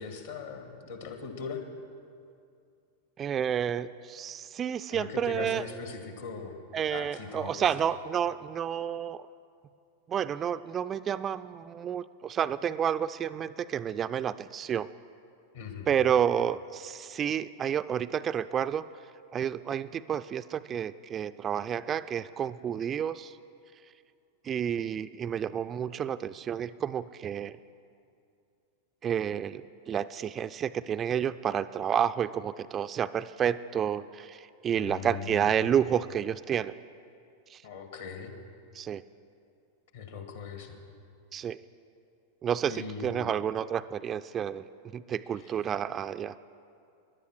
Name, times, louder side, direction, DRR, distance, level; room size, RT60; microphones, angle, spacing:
voice 1, 0.0-1.6 4.9-6.6 6.9-7.9 15.5-15.9 34.7-35.5 37.6-38.3 39.9-40.8 42.7-43.3 45.4-45.5, left 5 dB, 60° left, 5 dB, 1.9 m, -40 dB
voice 2, 3.2-5.6 6.7-9.3 10.1-14.9 15.9-18.9 19.3-23.3 24.4-27.5 29.0-36.8 37.5-37.6 38.7-39.0 41.3-41.6 42.4-44.6 44.9-46.3, right 9 dB, 25° right, 12 dB, 0.3 m, -30 dB
16.5 x 11.0 x 6.2 m, 2.5 s
figure-of-eight pair, 90°, 0 cm